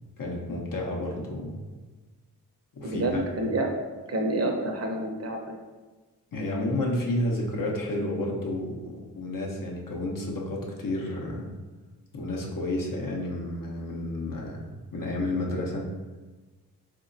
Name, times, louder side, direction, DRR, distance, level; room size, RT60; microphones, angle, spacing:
voice 1, 0.2-1.6 2.7-3.1 3.4-3.5 6.3-11.5 12.1-15.9, left 1 dB, 55° left, -1 dB, 0.8 m, -31 dB
voice 2, 2.8-3.8 4.1-5.6, right 1 dB, 40° right, 2 dB, 0.8 m, -28 dB
3.8 x 2.7 x 2.5 m, 1.3 s
supercardioid pair, 40°, 39 cm